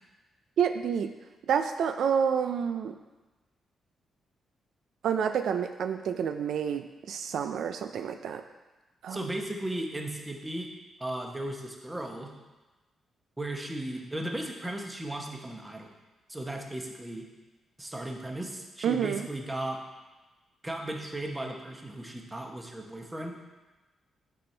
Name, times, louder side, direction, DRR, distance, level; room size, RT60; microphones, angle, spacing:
voice 1, 0.6-1.1 1.5-3.0 5.0-8.4 9.0-9.2 18.8-19.3, right 7 dB, 80° right, 7 dB, 0.3 m, -28 dB
voice 2, 9.1-10.7 11.0-12.3 13.4-15.9 16.3-17.2 17.8-19.8 20.6-23.3, right 1 dB, 15° right, 2 dB, 0.9 m, -36 dB
9.9 x 4.3 x 3.3 m, 1.2 s
cardioid pair, 105°, 0 cm